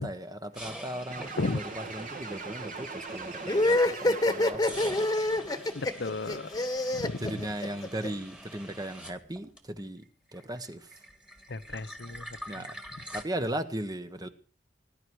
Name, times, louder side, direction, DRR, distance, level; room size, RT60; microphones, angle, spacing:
voice 1, 0.0-5.0 7.2-10.0 10.3-10.9 12.5-12.7 13.1-14.3, right 1 dB, 20° right, 9 dB, 1.3 m, -37 dB
sound 1, 0.6-4.1 4.5-10.0 10.3-13.2, equal, 5° right, 2.0 m, -45 dB
sound 2, 1.1-4.9, right 3 dB, 50° right, 2.4 m, -40 dB
sound 3, 3.5-8.1, left 1 dB, 20° left, 1.4 m, -26 dB
voice 2, 5.7-6.6 6.9-7.4 11.5-12.3 12.6-12.7, left 3 dB, 75° left, 13 dB, 0.8 m, -34 dB
19.5 x 11.0 x 4.8 m, 0.37 s
head